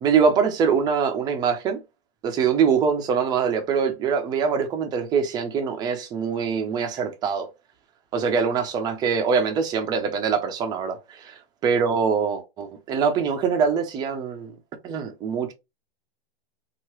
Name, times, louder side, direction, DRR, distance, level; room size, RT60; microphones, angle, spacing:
voice 1, 0.0-1.8 2.2-7.5 8.1-11.0 11.6-14.5 14.8-15.5, right 6 dB, 15° right, 0.3 m, -23 dB
2.8 x 2.3 x 3.0 m
hypercardioid pair, 130°, 31 cm